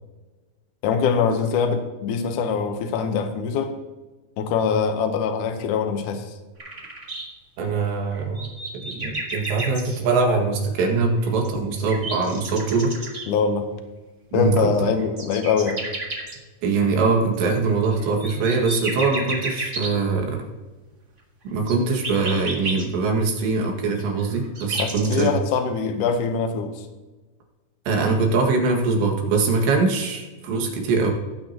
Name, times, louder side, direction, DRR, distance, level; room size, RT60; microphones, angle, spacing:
voice 1, 0.8-3.8 4.4-6.3 13.3-13.7 14.3-15.8 24.8-26.9, left 6 dB, 80° left, 7 dB, 1.8 m, -23 dB
sound 1, 6.6-7.2 8.0-10.0 11.2-13.2 14.7-16.3 18.0-19.9 21.6-22.8 24.0-25.3, right 2 dB, 60° right, 0.7 m, -31 dB
voice 2, 7.6-8.5 8.7-12.9 14.3-14.9 16.6-20.5 21.5-25.3 27.9-31.1, right 4 dB, 85° right, 1 dB, 4.1 m, -22 dB
18.0 x 9.1 x 2.9 m, 1.2 s
omnidirectional pair, 5.0 m